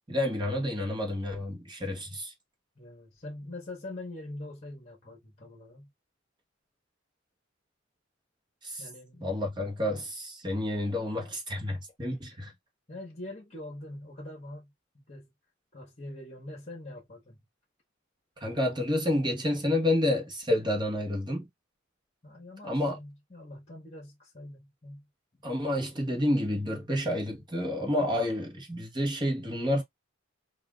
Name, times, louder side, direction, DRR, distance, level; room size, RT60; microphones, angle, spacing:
voice 1, 0.1-2.3 8.6-8.8 9.2-12.5 18.4-21.5 22.6-23.0 25.4-29.8, left 1 dB, 20° right, 1.1 m, -29 dB
voice 2, 2.7-5.9 8.8-9.3 12.9-14.7 15.1-15.3 15.7-17.4 22.2-25.1 25.3-25.4, left 1 dB, 35° left, 1.5 m, -43 dB
5.6 x 2.6 x 2.4 m
head